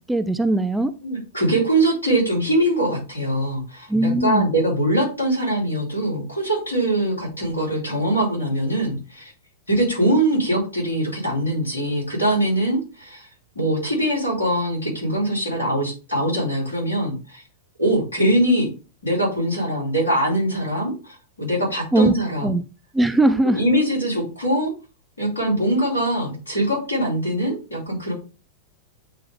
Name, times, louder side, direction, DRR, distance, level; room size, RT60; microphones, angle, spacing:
voice 1, 0.1-0.9 3.9-4.5 21.9-22.1 22.4-22.6 22.9-23.6, right 2 dB, 5° right, 11 dB, 0.4 m, -19 dB
voice 2, 1.0-9.3 9.7-13.3 13.5-17.4 17.8-18.7 19.0-22.5 23.4-24.7 25.2-28.1, right 1 dB, 80° left, -4 dB, 4.1 m, -22 dB
8.9 x 3.3 x 3.5 m, 0.32 s
figure-of-eight pair, 95°, 0 cm